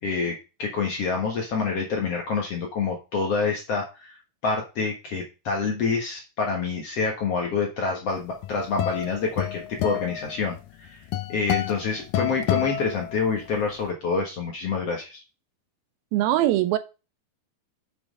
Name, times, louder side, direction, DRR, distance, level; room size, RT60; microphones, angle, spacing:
voice 1, 0.0-4.2 4.4-11.0 11.3-15.2, left 4 dB, 55° left, 1.8 m, -27 dB
sound 1, 8.2-13.6, left 12 dB, 75° left, 2.3 m, -29 dB
voice 2, 16.1-16.8, right 14 dB, 80° right, 2.4 m, -21 dB
7.3 x 6.1 x 5.3 m
omnidirectional pair, 4.4 m